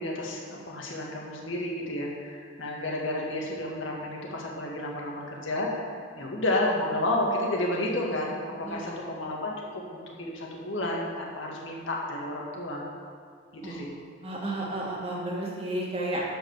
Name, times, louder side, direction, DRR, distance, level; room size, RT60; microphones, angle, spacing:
voice 1, 0.0-12.9 13.5-13.9, left 1 dB, 85° left, -2 dB, 1.9 m, -31 dB
voice 2, 8.6-9.0 13.6-13.9 14.2-16.2, right 1 dB, 30° right, -3 dB, 1.8 m, -32 dB
12.5 x 5.1 x 6.6 m, 2.1 s
head